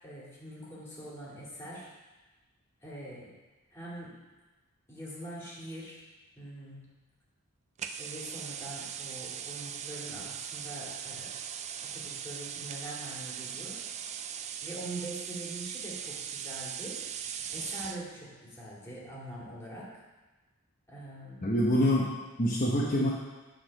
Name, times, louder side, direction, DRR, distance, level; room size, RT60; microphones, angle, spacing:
voice 1, 0.0-1.9 2.8-3.3 3.7-4.1 4.9-6.0 6.4-6.8 8.0-11.4 11.8-13.8 14.6-17.0 17.5-19.9 20.9-21.5, right 1 dB, 10° left, -6 dB, 2.2 m, -43 dB
sound 1, 7.8-18.1, right 8 dB, 30° right, 0.3 m, -39 dB
voice 2, 21.4-23.1, equal, 40° left, -5 dB, 0.9 m, -26 dB
9.0 x 3.9 x 6.6 m, 1.2 s
head